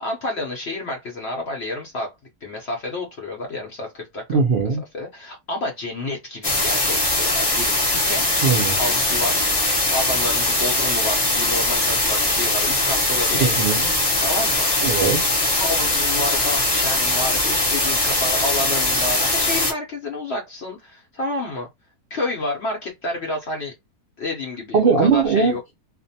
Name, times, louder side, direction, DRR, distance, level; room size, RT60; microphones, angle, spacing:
voice 1, 0.0-2.1 2.4-4.4 4.9-8.2 8.8-9.4 9.9-13.5 14.2-14.9 15.5-21.7 22.1-23.7 24.2-25.6, left 2 dB, 60° left, 0.7 m, -29 dB
voice 2, 4.3-4.8 8.4-8.8 13.4-13.9 14.8-15.2 24.7-25.7, right 5 dB, 75° right, 0.5 m, -19 dB
sound 1, 6.4-19.7, left 2 dB, 20° left, 0.7 m, -21 dB
2.5 x 2.1 x 2.6 m
omnidirectional pair, 1.7 m